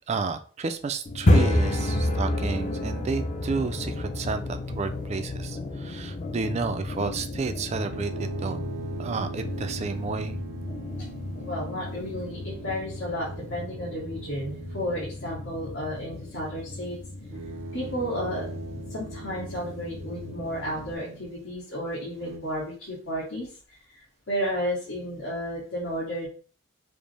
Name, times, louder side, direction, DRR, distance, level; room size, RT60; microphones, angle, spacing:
voice 1, 0.1-8.6 9.0-10.4, right 4 dB, 30° right, 9 dB, 0.3 m, -31 dB
sound 1, 1.0-20.9, left 1 dB, 35° left, 0.6 m, -31 dB
sound 2, 7.9-15.2 17.2-21.4 22.0-22.4, right 5 dB, 90° right, 0.5 m, -42 dB
voice 2, 11.4-17.0 17.7-18.4 18.9-23.5 23.9-26.3, equal, 85° left, -7 dB, 1.4 m, -32 dB
5.1 x 2.1 x 3.2 m, 0.42 s
head